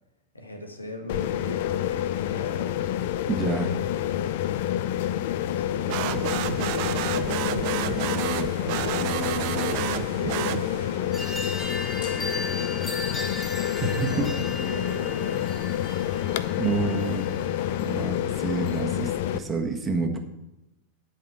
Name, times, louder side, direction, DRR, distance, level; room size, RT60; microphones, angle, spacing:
voice 1, 0.3-4.4 5.2-13.1 13.9-16.1, left 1 dB, 80° left, 5 dB, 1.7 m, -41 dB
sound 1, 1.1-19.4, left 11 dB, 50° left, 0.5 m, -28 dB
voice 2, 3.3-3.7 13.8-13.9 14.2-14.3 16.6-17.3 17.8-20.2, right 3 dB, 20° right, 3 dB, 1.6 m, -28 dB
sound 2, 5.9-11.1, right 14 dB, 45° right, 0.5 m, -30 dB
sound 3, 11.1-18.8, left 2 dB, 15° left, 2.4 m, -37 dB
10.5 x 5.8 x 7.1 m, 0.94 s
figure-of-eight pair, 90°, 0 cm